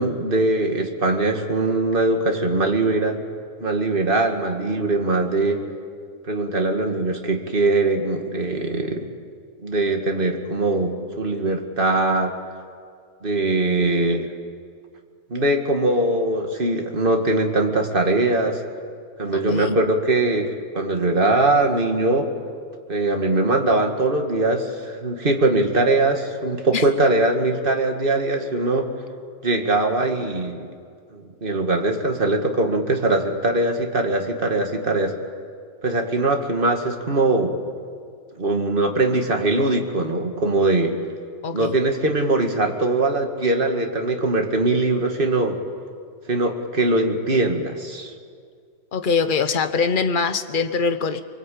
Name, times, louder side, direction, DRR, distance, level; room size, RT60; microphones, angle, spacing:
voice 1, 0.0-3.2 3.6-5.6 6.3-9.1 9.6-12.4 13.2-14.3 15.3-18.6 19.2-22.3 22.9-28.9 29.4-30.6 31.1-35.1 35.8-37.5 38.4-40.9 41.5-45.6 46.3-48.1, right 2 dB, 35° right, 3 dB, 2.3 m, -21 dB
voice 2, 19.3-19.8 26.7-26.8 41.4-41.8 48.9-51.2, left 5 dB, 35° left, 9 dB, 1.1 m, -23 dB
24.0 x 24.0 x 8.6 m, 2.1 s
omnidirectional pair, 1.7 m